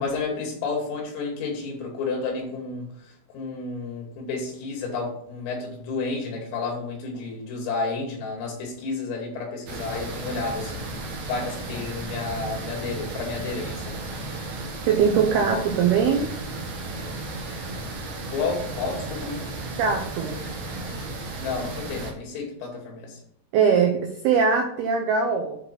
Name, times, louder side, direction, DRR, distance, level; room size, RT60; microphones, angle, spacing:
voice 1, 0.0-14.0 18.3-19.4 21.4-23.2, left 4 dB, 80° left, 0 dB, 5.1 m, -31 dB
sound 1, 9.7-22.1, right 2 dB, 60° right, 1.9 m, -34 dB
voice 2, 14.9-16.3 19.8-20.4 23.5-25.6, right 6 dB, 90° right, 2 dB, 2.2 m, -21 dB
9.7 x 4.1 x 6.0 m, 0.66 s
omnidirectional pair, 5.9 m